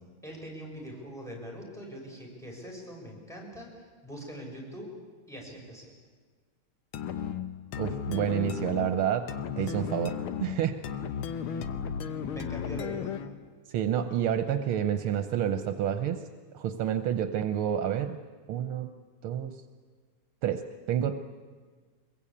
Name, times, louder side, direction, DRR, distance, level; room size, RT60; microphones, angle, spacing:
voice 1, 0.2-4.9 5.3-5.9 12.0-13.1, equal, ahead, -2 dB, 6.2 m, -42 dB
sound 1, 6.9-13.4, left 7 dB, 80° left, 1.9 m, -35 dB
voice 2, 7.8-9.3 9.6-10.7 13.7-16.2 16.5-18.2 18.5-18.9 19.2-19.6 20.4-21.2, right 9 dB, 80° right, 9 dB, 1.7 m, -29 dB
24.0 x 22.5 x 8.6 m, 1.5 s
omnidirectional pair, 2.3 m